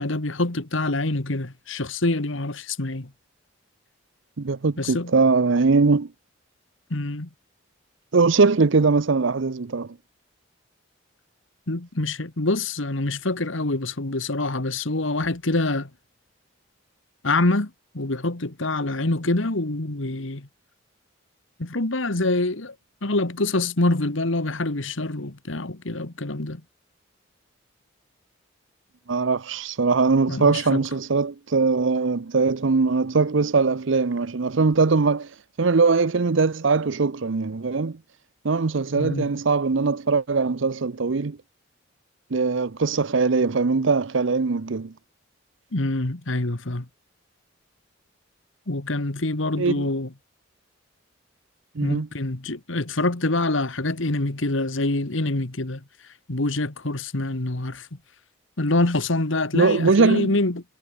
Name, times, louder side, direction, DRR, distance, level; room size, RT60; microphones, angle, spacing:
voice 1, 0.0-3.1 4.8-5.1 6.9-7.3 11.7-15.9 17.2-20.5 21.6-22.7 23.0-26.6 30.3-30.8 39.0-39.3 45.7-46.9 48.7-50.1 51.8-55.8 56.3-57.9 58.6-60.6, left 2 dB, 70° left, 1.7 m, -25 dB
voice 2, 4.4-6.1 8.1-9.9 29.1-35.3 35.6-38.0 38.4-41.4 42.3-44.9 49.6-49.9 51.8-52.1 59.5-60.3, right 4 dB, 65° right, 0.7 m, -21 dB
head